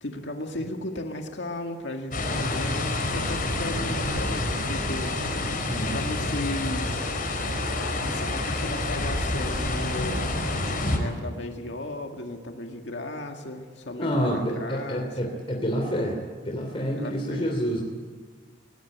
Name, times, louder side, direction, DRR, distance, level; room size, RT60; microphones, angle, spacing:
voice 1, 0.0-5.2 5.9-7.0 7.7-10.3 10.9-15.3 16.9-17.6, left 1 dB, 80° left, 3 dB, 2.0 m, -35 dB
sound 1, 2.1-11.0, left 2 dB, 50° left, 4.4 m, -28 dB
voice 2, 5.6-5.9 14.0-16.2 16.4-17.8, equal, 30° left, 1 dB, 2.9 m, -28 dB
22.0 x 19.0 x 9.2 m, 1.5 s
head